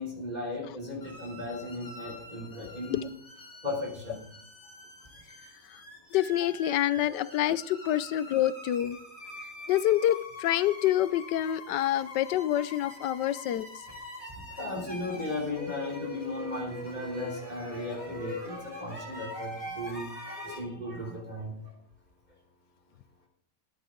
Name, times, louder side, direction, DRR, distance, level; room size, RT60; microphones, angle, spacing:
voice 1, 0.0-3.0 3.6-4.2 7.1-7.3 14.3-21.6, left 2 dB, 25° right, -1 dB, 3.4 m, -36 dB
sound 1, 1.0-20.6, left 2 dB, 20° left, 3.0 m, -44 dB
voice 2, 2.6-3.1 5.7-5.8 6.1-9.0 9.7-13.7, left 12 dB, 80° left, 16 dB, 1.3 m, -27 dB
14.0 x 10.5 x 3.8 m, 0.71 s
omnidirectional pair, 1.9 m